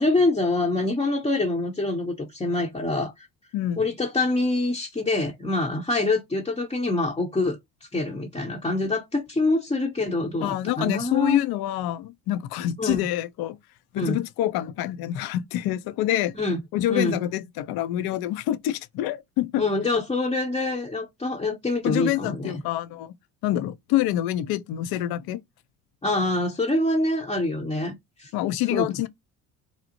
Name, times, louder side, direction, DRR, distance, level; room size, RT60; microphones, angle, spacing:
voice 1, 0.0-3.3 3.8-7.6 7.9-11.4 12.8-13.1 14.0-14.2 16.3-16.6 16.9-17.2 19.6-22.6 26.0-27.9 28.2-28.3 28.7-28.9, left 2 dB, 10° left, 0.7 m, -25 dB
voice 2, 10.4-13.6 13.9-16.3 16.7-19.6 21.8-23.1 23.4-25.4 28.3-29.1, left 13 dB, 55° left, 0.5 m, -26 dB
2.7 x 2.0 x 2.7 m
hypercardioid pair, 65°, 44 cm